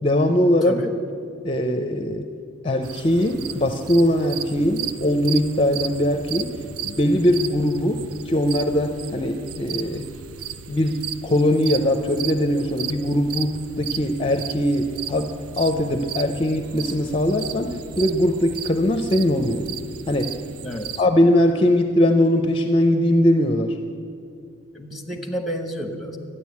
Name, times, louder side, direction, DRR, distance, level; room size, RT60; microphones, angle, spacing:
voice 1, 0.0-0.8 1.4-2.3 2.6-10.0 10.7-15.3 15.6-19.6 20.1-20.3 21.0-23.8, left 1 dB, 25° left, 6 dB, 0.5 m, -21 dB
sound 1, 2.8-21.0, right 9 dB, 85° right, 0.5 m, -35 dB
voice 2, 20.6-21.0 24.7-26.2, equal, ahead, 4 dB, 1.1 m, -30 dB
12.0 x 9.9 x 8.4 m, 2.4 s
head